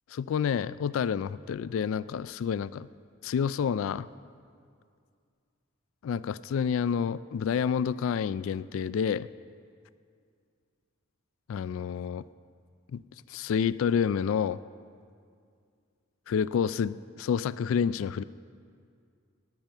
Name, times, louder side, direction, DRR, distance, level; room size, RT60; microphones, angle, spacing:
voice 1, 0.1-2.9 3.2-4.1 6.0-9.3 11.5-12.2 12.9-13.0 13.3-14.6 16.3-18.2, left 7 dB, 70° left, 18 dB, 0.3 m, -29 dB
17.0 x 10.5 x 5.6 m, 2.3 s
head